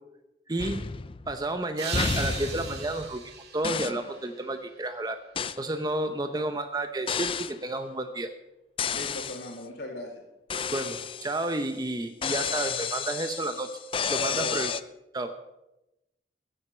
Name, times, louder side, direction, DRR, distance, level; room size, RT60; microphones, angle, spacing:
voice 1, 0.5-0.8 1.3-5.2 5.6-8.3 10.7-13.7 14.1-14.7 15.1-15.3, right 2 dB, 20° right, 7 dB, 0.7 m, -31 dB
sound 1, 0.6-1.5 1.9-3.3 3.6-4.1 5.3-5.6 7.1-7.6 8.8-9.5 10.5-11.6 12.2-14.8, left 6 dB, 30° left, 0.4 m, -31 dB
sound 2, 1.8-4.9, right 6 dB, 65° right, 2.1 m, -39 dB
voice 2, 8.9-10.1 14.3-14.6, left 1 dB, 65° left, -6 dB, 2.4 m, -38 dB
15.5 x 7.6 x 6.7 m, 0.93 s
head